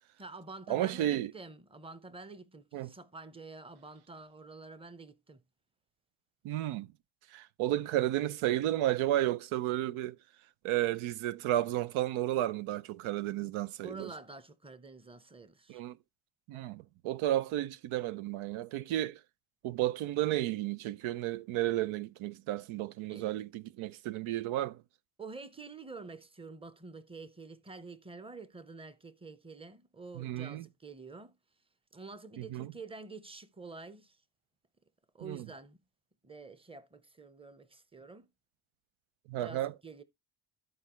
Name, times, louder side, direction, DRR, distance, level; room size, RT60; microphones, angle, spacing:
voice 1, 0.2-5.4 13.8-15.8 23.1-23.3 25.2-31.3 31.9-34.2 35.1-35.8 36.2-38.3 39.4-40.0, right 3 dB, 10° right, 0.9 m, -48 dB
voice 2, 0.7-1.3 2.7-2.9 6.4-6.9 7.3-10.2 10.6-14.1 15.7-16.0 16.5-19.2 19.6-24.8 30.1-30.7 32.4-32.7 35.2-35.5 39.3-39.7, right 14 dB, 90° right, 0.6 m, -32 dB
13.5 x 4.7 x 3.0 m
cardioid pair, 85°, 47 cm